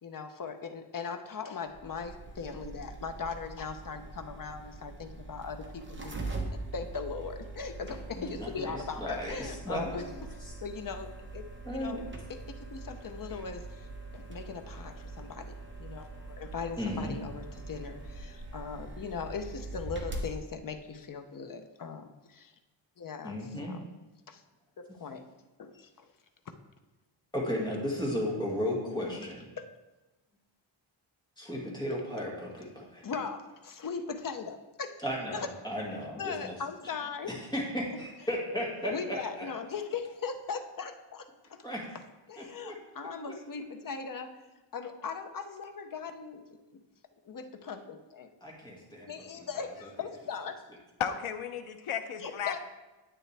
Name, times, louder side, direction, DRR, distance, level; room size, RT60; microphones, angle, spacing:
voice 1, 0.0-6.3 6.7-10.0 10.3-12.0 12.3-13.9 14.1-15.5 15.8-22.5 23.0-23.4 23.6-23.9 24.3-24.4 24.8-25.3 25.6-26.1 28.8-29.3 29.6-29.7 33.0-35.0 35.3-35.5 35.9-37.3 38.9-41.6 42.3-44.4 44.7-46.4 46.7-46.8 47.3-48.3 49.1-50.6 52.2-52.6, left 5 dB, 45° left, 7 dB, 0.7 m, -39 dB
sound 1, 1.7-20.3, right 2 dB, 25° right, 1.1 m, -43 dB
voice 2, 8.2-10.1 11.6-12.0 13.3-13.4 16.8-17.2 23.2-23.8 27.3-29.5 31.4-33.0 35.0-36.6 37.3-39.5 41.6-41.9 42.4-42.8 43.3-43.4 48.4-49.3, equal, 10° left, -3 dB, 2.0 m, -35 dB
voice 3, 51.0-52.6, left 8 dB, 85° left, 7 dB, 0.7 m, -34 dB
10.0 x 8.5 x 3.4 m, 1.1 s
wide cardioid pair, 170°, 49 cm